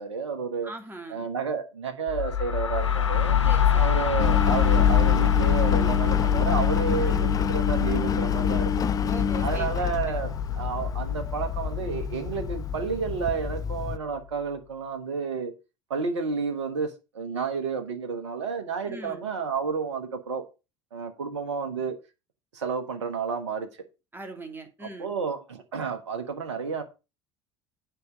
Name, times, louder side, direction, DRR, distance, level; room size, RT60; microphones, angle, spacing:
voice 1, 0.0-0.7 1.1-3.4 3.7-8.7 9.4-15.5 15.9-20.4 20.9-21.9 22.5-23.7 25.0-26.8, right 5 dB, 75° right, 1.3 m, -31 dB
voice 2, 0.6-1.2 3.4-4.1 7.0-7.4 9.1-10.1 18.9-19.3 24.1-25.1, right 2 dB, 15° right, 2.7 m, -41 dB
sound 1, 2.1-13.7, left 9 dB, 85° left, 0.6 m, -25 dB
Engine, 4.2-14.0, left 7 dB, 25° left, 0.4 m, -29 dB
9.8 x 5.1 x 6.0 m
figure-of-eight pair, 65°, 15 cm